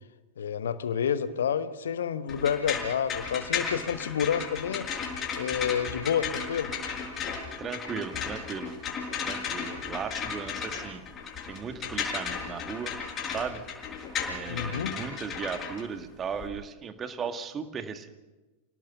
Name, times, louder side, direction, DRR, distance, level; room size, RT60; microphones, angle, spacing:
voice 1, 0.4-4.9 5.4-6.7 14.5-15.0, left 8 dB, 65° left, 12 dB, 1.2 m, -29 dB
sound 1, 2.3-16.5, left 6 dB, 30° left, 6.1 m, -35 dB
voice 2, 7.6-8.7 9.2-11.0 11.5-12.9 13.3-13.6 14.3-18.1, right 6 dB, 25° right, 8 dB, 1.9 m, -36 dB
28.5 x 18.0 x 5.8 m, 1.1 s
figure-of-eight pair, 90°, 0 cm